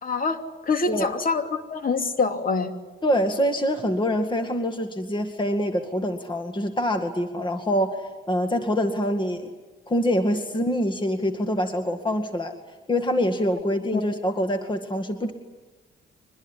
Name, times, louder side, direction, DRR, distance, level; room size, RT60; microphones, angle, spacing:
voice 1, 0.0-2.7 13.9-14.0, left 4 dB, 45° left, 6 dB, 2.9 m, -25 dB
voice 2, 3.0-9.5 9.9-12.5 12.9-15.3, equal, 25° left, 6 dB, 2.1 m, -25 dB
25.0 x 21.0 x 9.9 m, 1.2 s
cardioid pair, 90°, 20 cm